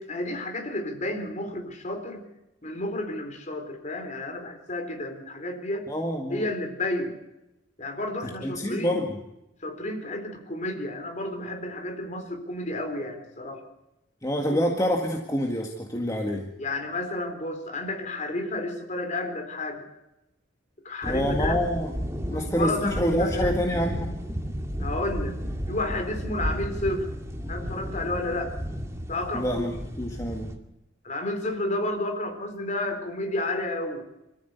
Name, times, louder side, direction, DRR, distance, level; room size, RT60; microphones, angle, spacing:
voice 1, 0.0-2.2 2.6-5.9 6.3-7.2 7.8-9.0 9.6-13.6 14.5-14.8 16.6-19.8 20.8-21.6 22.3-23.6 24.8-25.4 25.7-27.1 27.5-28.5 29.1-29.6 31.0-34.0, left 1 dB, 40° left, 5 dB, 3.9 m, -31 dB
voice 2, 5.9-6.5 8.2-9.2 14.2-16.5 21.0-21.9 22.3-24.1 29.3-29.7 30.0-30.5, equal, 15° left, 1 dB, 1.9 m, -27 dB
sound 1, 21.0-30.6, equal, 15° right, 2.2 m, -33 dB
27.0 x 14.5 x 8.2 m, 0.92 s
head